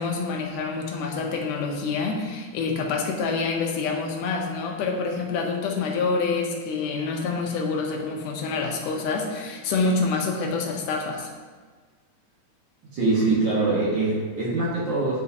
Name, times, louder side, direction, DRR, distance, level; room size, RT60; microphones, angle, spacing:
voice 1, 0.0-11.3, left 4 dB, 85° left, 1 dB, 2.3 m, -27 dB
voice 2, 12.9-15.2, right 3 dB, 55° right, -6 dB, 1.4 m, -23 dB
9.6 x 4.9 x 2.7 m, 1.5 s
omnidirectional pair, 3.6 m